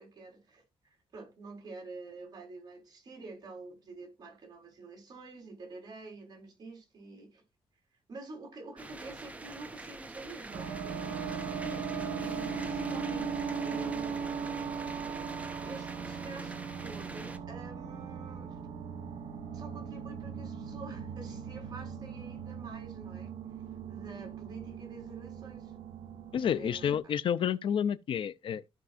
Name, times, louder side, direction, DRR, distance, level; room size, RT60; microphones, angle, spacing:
voice 1, 0.0-7.4 8.1-13.3 13.6-14.2 15.6-18.6 19.5-23.3 23.9-25.7 26.5-27.0, right 3 dB, 40° right, 4.1 m, -48 dB
sound 1, 8.8-17.4, right 2 dB, 15° right, 1.1 m, -45 dB
sound 2, 10.5-27.0, right 6 dB, 75° right, 2.0 m, -39 dB
voice 2, 26.3-28.7, left 8 dB, 60° left, 0.6 m, -30 dB
15.5 x 5.3 x 2.5 m
cardioid pair, 130°, 10 cm